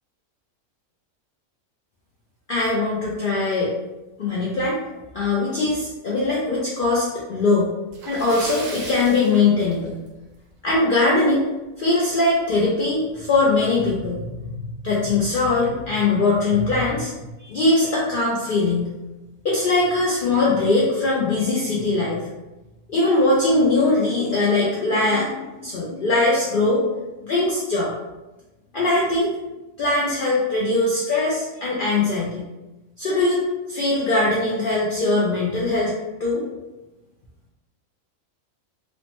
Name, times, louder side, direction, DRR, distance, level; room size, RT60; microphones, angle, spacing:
voice 1, 2.5-3.7 4.2-4.8 5.1-7.7 8.1-9.9 10.6-11.5 11.8-17.1 17.4-18.9 19.4-22.2 22.9-26.9 27.2-27.9 28.7-29.3 29.8-32.4 33.0-33.4 33.7-35.9 36.2-36.4, left 2 dB, 65° left, -6 dB, 0.5 m, -21 dB
Splash splatter, 7.9-10.2 10.6-10.7 11.2-11.3 12.7-12.8 13.1-13.2 13.9-14.1, right 2 dB, 60° right, 0.8 m, -37 dB
3.1 x 2.0 x 2.8 m, 1.1 s
omnidirectional pair, 1.4 m